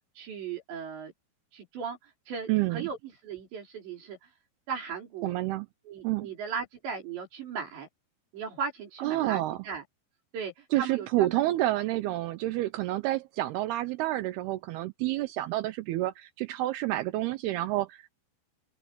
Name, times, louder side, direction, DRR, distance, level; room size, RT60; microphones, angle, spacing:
voice 1, 0.2-1.1 1.5-3.0 3.2-4.3 4.7-5.4 5.9-7.9 8.3-9.8 10.3-11.4, right 6 dB, 70° right, 6.9 m, -37 dB
voice 2, 2.5-2.9 5.2-5.7 6.0-6.3 9.0-9.6 10.7-18.1, right 16 dB, 85° right, 2.3 m, -29 dB
open air
omnidirectional pair, 5.3 m